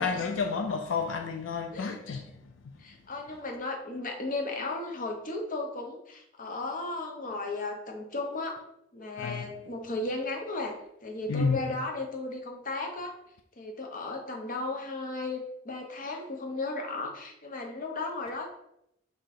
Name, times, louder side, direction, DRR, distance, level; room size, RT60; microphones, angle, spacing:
voice 1, 0.0-2.3 2.6-2.8 9.2-9.5 11.3-11.7, left 5 dB, 85° left, 0.4 m, -30 dB
voice 2, 2.8-8.6 8.9-10.7 11.0-13.1 13.6-18.5, left 2 dB, 45° left, 0.8 m, -35 dB
3.6 x 2.9 x 4.1 m
head